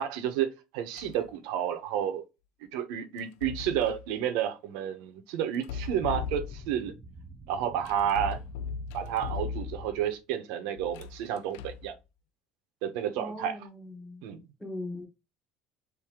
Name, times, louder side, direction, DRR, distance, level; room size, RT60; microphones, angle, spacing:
voice 1, 0.0-2.2 2.7-6.9 7.5-8.4 8.9-11.9 12.8-13.6 14.2-14.4, right 9 dB, 70° right, 0.8 m, -31 dB
sound 1, 1.0-1.3 3.2-4.1 5.5-6.9 7.9-10.0 10.8-11.9, left 6 dB, 85° left, 0.4 m, -38 dB
sound 2, 5.8-10.0, right 2 dB, 20° right, 0.6 m, -49 dB
voice 2, 13.2-14.2 14.6-15.1, left 1 dB, 5° left, 1.1 m, -39 dB
4.7 x 2.7 x 3.6 m
cardioid pair, 160°, 0 cm